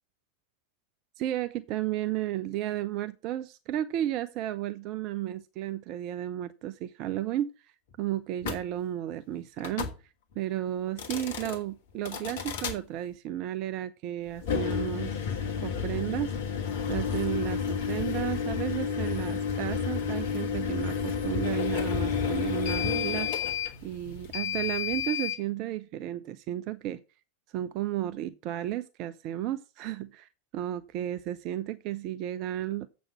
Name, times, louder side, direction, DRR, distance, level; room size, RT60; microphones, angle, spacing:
voice 1, 1.2-7.5 8.0-9.9 10.4-15.2 15.6-16.6 16.9-23.3 23.8-27.0 27.5-32.9, right 13 dB, 40° right, 0.5 m, -33 dB
sound 1, 8.4-8.6 9.6-10.0 10.9-11.6 12.0-12.8 14.4-25.4, left 7 dB, 55° left, 1.4 m, -31 dB
7.8 x 6.2 x 5.8 m
figure-of-eight pair, 90°, 0 cm